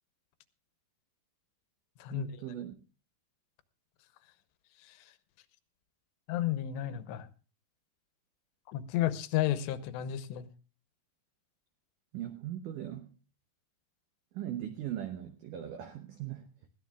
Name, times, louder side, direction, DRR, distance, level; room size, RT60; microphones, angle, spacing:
voice 1, 2.1-2.7 12.1-13.1 14.3-16.7, right 11 dB, 85° right, 7 dB, 1.8 m, -39 dB
voice 2, 6.3-7.3 8.7-10.5, left 12 dB, 85° left, 12 dB, 3.0 m, -32 dB
20.5 x 15.5 x 2.3 m, 0.34 s
omnidirectional pair, 5.0 m